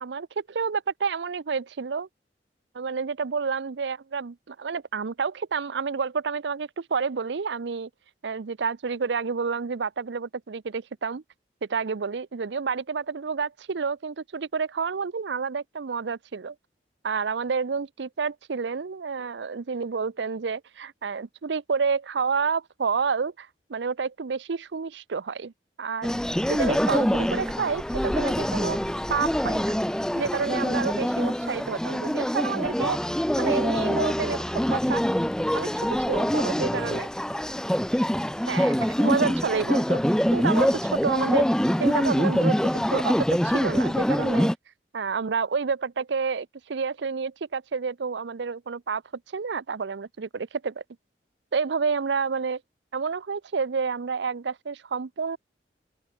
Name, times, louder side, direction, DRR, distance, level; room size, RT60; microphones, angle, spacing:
voice 1, 0.0-2.1 2.7-7.9 8.2-11.2 11.6-16.5 17.0-25.5 25.8-26.1 26.5-28.8 29.1-29.8 30.1-35.0 35.5-37.1 38.5-40.0 40.3-41.5 41.8-44.5 44.9-49.0 49.3-50.8 51.5-52.6 52.9-55.4, right 5 dB, 85° right, 0.6 m, -29 dB
sound 1, 26.0-44.6, equal, 5° left, 0.5 m, -25 dB
open air
head